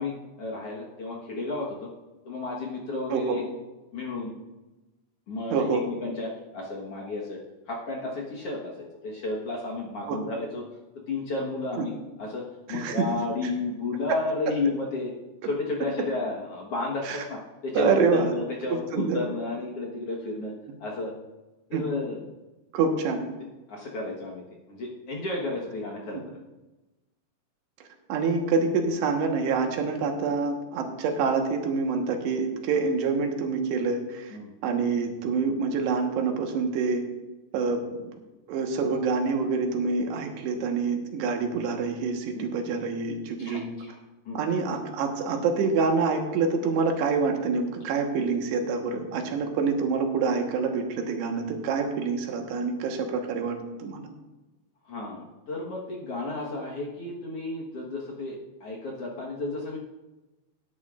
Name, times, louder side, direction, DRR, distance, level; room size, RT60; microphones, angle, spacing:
voice 1, 0.0-1.9 2.2-3.4 3.9-4.3 5.3-7.4 7.7-8.7 9.0-10.6 11.1-15.1 15.4-20.5 20.8-21.1 21.7-22.2 23.7-26.4 34.3-34.5 37.7-37.8 42.3-42.5 43.4-43.9 44.2-44.4 54.9-59.8, left 3 dB, 65° left, -3 dB, 1.5 m, -32 dB
voice 2, 5.5-5.8 10.1-10.2 11.8-11.9 12.7-13.1 17.1-17.2 17.8-18.3 18.7-19.2 21.7-21.8 22.7-23.2 28.1-34.4 34.6-37.0 37.5-38.1 38.5-43.6 44.4-54.1, right 4 dB, 90° right, 3 dB, 3.4 m, -26 dB
17.5 x 10.5 x 2.5 m, 1.1 s
omnidirectional pair, 4.6 m